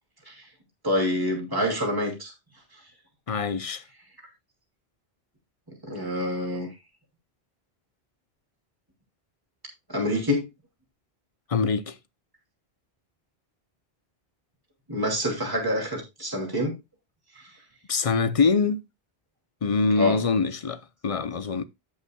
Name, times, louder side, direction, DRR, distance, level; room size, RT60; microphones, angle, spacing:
voice 1, 0.8-2.3 5.8-6.7 9.9-10.4 14.9-16.7 20.0-20.2, left 1 dB, 20° right, 2.7 m, -26 dB
voice 2, 3.3-3.8 11.5-12.0 17.9-18.8 19.6-21.6, left 4 dB, 40° left, 0.6 m, -24 dB
16.0 x 5.5 x 2.3 m
omnidirectional pair, 1.0 m